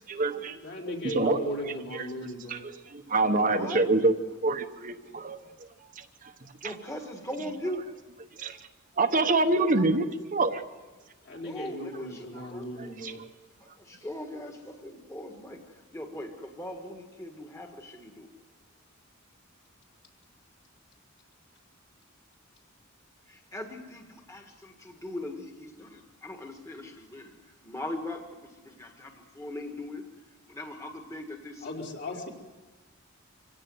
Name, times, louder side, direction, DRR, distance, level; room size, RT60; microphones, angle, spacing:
voice 1, 0.1-0.6 1.1-1.4 2.5-4.1 4.4-5.7 6.0-6.1 6.6-6.7 8.4-8.6 9.0-10.6 12.8-13.1, right 2 dB, 40° right, 6 dB, 1.0 m, -26 dB
voice 2, 0.6-2.6 11.2-13.2 31.6-32.3, equal, 55° left, -1 dB, 4.2 m, -36 dB
voice 3, 3.5-3.8 6.6-7.9 11.4-12.9 13.6-18.3 23.3-31.7, left 1 dB, 15° left, 3 dB, 1.7 m, -40 dB
25.0 x 17.0 x 7.9 m, 1.3 s
head